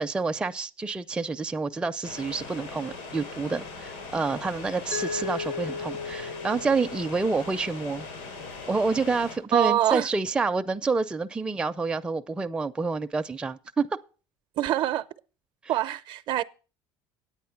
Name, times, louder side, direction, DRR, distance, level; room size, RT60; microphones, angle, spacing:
voice 1, 0.0-8.1 8.7-13.9 15.6-15.7, right 4 dB, 10° right, 0.4 m, -28 dB
sound 1, 2.0-9.4, left 4 dB, 90° left, 4.1 m, -40 dB
Mallet percussion, 4.9-7.8, left 5 dB, 55° left, 0.7 m, -36 dB
voice 2, 9.5-10.1 14.6-15.0 15.7-16.4, right 12 dB, 55° right, 0.6 m, -24 dB
9.4 x 8.4 x 5.7 m
cardioid pair, 130°, 10 cm